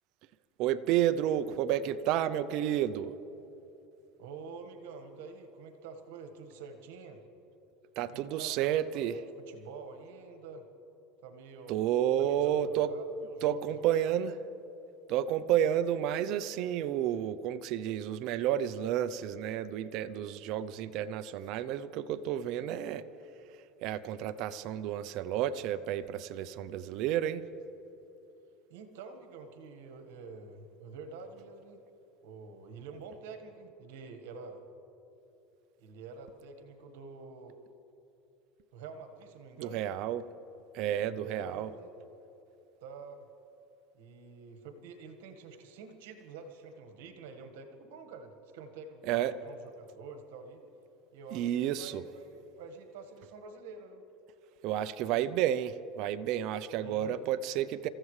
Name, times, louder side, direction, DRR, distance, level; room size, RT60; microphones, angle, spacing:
voice 1, 0.6-3.2 8.0-9.2 11.7-12.9 13.4-14.4 15.1-23.0 23.8-27.4 39.6-40.2 40.7-41.7 49.0-49.3 51.3-52.0 54.6-57.9, right 11 dB, 60° right, 13 dB, 0.6 m, -31 dB
voice 2, 4.2-7.2 8.1-9.0 9.4-10.7 11.2-11.8 12.2-14.0 28.7-31.8 32.2-34.6 35.8-37.6 38.7-40.0 41.0-41.9 42.8-43.3 43.9-50.6 51.1-54.0 56.8-57.3, right 4 dB, 85° right, 5 dB, 1.5 m, -47 dB
26.5 x 15.0 x 3.3 m, 3.0 s
supercardioid pair, 120°, 0 cm